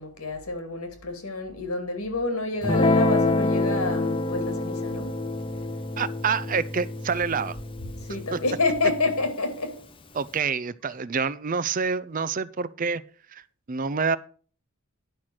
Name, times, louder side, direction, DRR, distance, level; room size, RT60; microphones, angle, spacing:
voice 1, 0.0-5.1 8.0-9.8, left 3 dB, 90° left, 2.5 m, -28 dB
Guitar, 2.6-9.2, left 2 dB, 25° left, 0.7 m, -27 dB
voice 2, 6.0-7.6 8.3-8.4 10.1-13.0 13.3-13.4 13.7-14.2, right 5 dB, 40° right, 0.5 m, -27 dB
10.5 x 5.8 x 6.3 m
head